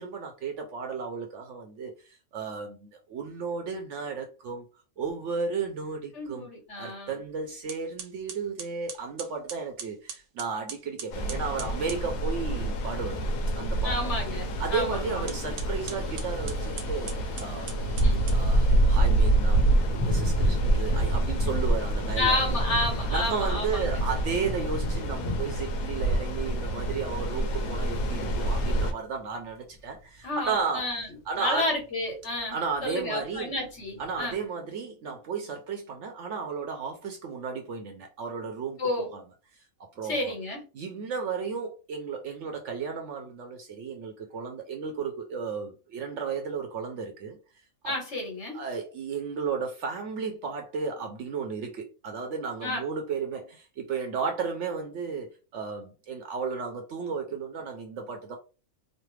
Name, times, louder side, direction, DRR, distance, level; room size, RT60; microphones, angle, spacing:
voice 1, 0.0-4.7 5.0-6.5 6.8-13.3 13.6-14.1 14.6-17.8 18.3-19.6 20.0-22.4 23.1-30.9 31.3-31.7 32.5-33.6 34.0-39.2 39.5-40.3 40.7-47.4 47.8-47.9 48.5-58.4, right 5 dB, 65° right, 0.8 m, -34 dB
voice 2, 6.1-7.2 13.8-15.3 18.0-18.2 22.2-24.0 30.2-31.1 31.4-34.4 38.8-39.1 40.1-40.6 47.8-48.6 52.6-52.8, left 2 dB, 55° left, 1.4 m, -31 dB
sound 1, 7.1-7.3 7.7-12.1 15.2-18.8, right 6 dB, 85° right, 1.2 m, -42 dB
sound 2, 11.1-28.9, right 1 dB, 75° left, 1.1 m, -27 dB
sound 3, 14.7-34.4, left 1 dB, 10° left, 0.7 m, -41 dB
3.2 x 2.0 x 3.1 m
omnidirectional pair, 1.5 m